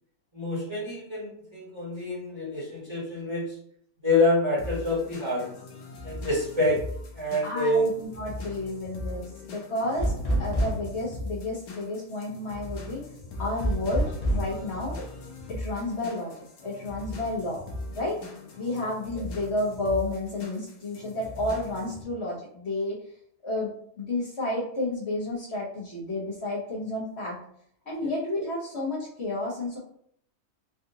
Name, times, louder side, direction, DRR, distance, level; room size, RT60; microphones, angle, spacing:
voice 1, 0.3-3.4 4.0-5.5 6.0-6.8 7.1-7.9 28.0-28.1, left 1 dB, 20° right, -7 dB, 1.1 m, -26 dB
sound 1, 4.6-22.0, left 1 dB, 90° left, 1.2 m, -40 dB
voice 2, 7.4-10.1 10.4-13.0 13.4-15.1 15.5-16.3 16.6-17.6 17.9-18.2 18.6-23.0 23.4-27.4 27.9-29.8, left 2 dB, 50° left, -6 dB, 1.1 m, -31 dB
sound 2, 10.0-11.0 13.6-14.5, right 1 dB, 35° left, 0.6 m, -26 dB
3.8 x 2.4 x 2.7 m, 0.66 s
omnidirectional pair, 1.5 m